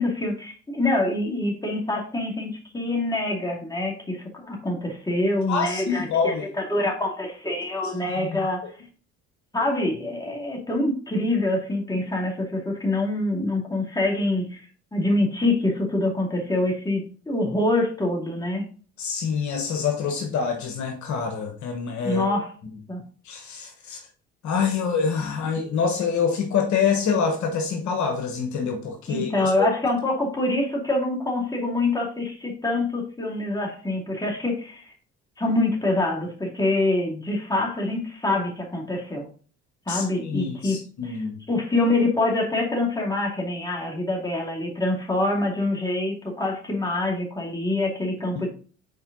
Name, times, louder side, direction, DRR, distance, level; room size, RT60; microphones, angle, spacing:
voice 1, 0.0-8.7 9.5-14.6 14.9-18.6 22.0-22.5 22.9-23.0 29.1-34.9 35.4-39.3 39.9-48.5, left 2 dB, 10° left, -1 dB, 2.5 m, -25 dB
voice 2, 5.5-6.4 8.0-8.4 19.0-22.4 23.2-24.0 24.4-29.7 39.9-41.4, left 6 dB, 55° left, 4 dB, 1.2 m, -26 dB
5.6 x 4.5 x 3.9 m, 0.40 s
hypercardioid pair, 60°, 33 cm